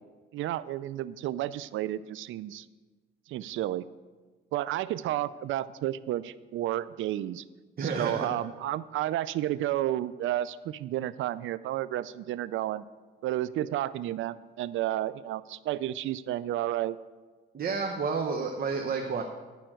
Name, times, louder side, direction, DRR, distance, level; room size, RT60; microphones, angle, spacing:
voice 1, 0.3-2.7 3.3-3.9 4.5-7.4 7.8-12.8 13.2-17.0, right 13 dB, 80° right, 16 dB, 0.5 m, -31 dB
voice 2, 7.8-8.3 17.5-19.2, right 5 dB, 50° right, 3 dB, 1.0 m, -30 dB
11.0 x 5.6 x 7.6 m, 1.3 s
cardioid pair, 90°, 20 cm